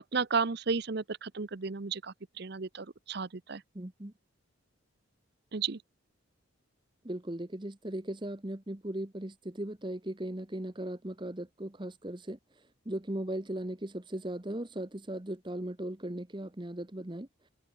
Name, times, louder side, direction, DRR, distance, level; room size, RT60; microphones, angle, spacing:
voice 1, 0.1-3.6 5.5-5.8, right 5 dB, 50° right, 0.7 m, -33 dB
voice 2, 3.7-4.1 7.0-12.4 12.8-17.3, right 1 dB, 20° right, 1.1 m, -38 dB
open air
head